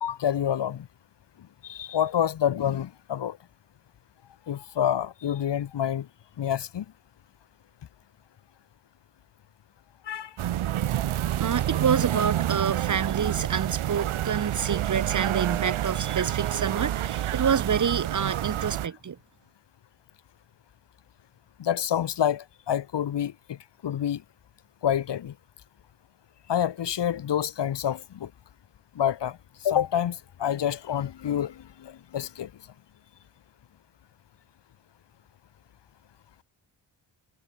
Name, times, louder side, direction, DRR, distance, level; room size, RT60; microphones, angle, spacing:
voice 1, 0.0-0.9 1.6-3.4 4.5-6.1 6.4-6.8 10.1-10.3 21.6-23.6 23.8-24.2 24.8-25.3 26.5-28.3 28.9-29.4 29.6-32.5, left 10 dB, 60° left, 0.9 m, -27 dB
sound 1, 10.4-18.9, right 12 dB, 85° right, 0.9 m, -28 dB
voice 2, 11.4-19.2, right 7 dB, 40° right, 0.7 m, -27 dB
wide cardioid pair, 175°, 48 cm